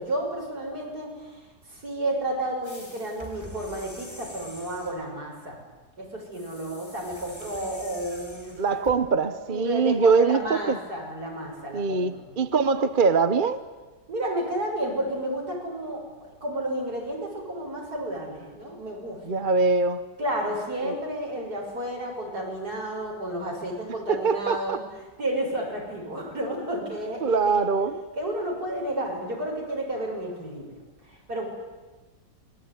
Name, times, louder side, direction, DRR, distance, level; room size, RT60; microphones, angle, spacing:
voice 1, 0.0-1.4 1.7-5.6 6.0-8.6 9.5-12.3 14.1-19.5 20.2-24.8 25.2-27.7 28.1-31.5, right 1 dB, 60° right, 7.6 m, -31 dB
sound 1, 2.6-5.0 6.3-9.0, left 1 dB, 15° left, 4.5 m, -45 dB
voice 2, 8.6-10.8 11.7-13.6 19.2-20.1 20.8-20.9 24.1-24.8 27.2-28.0, right 4 dB, 35° right, 0.9 m, -23 dB
27.5 x 21.0 x 9.8 m
omnidirectional pair, 1.9 m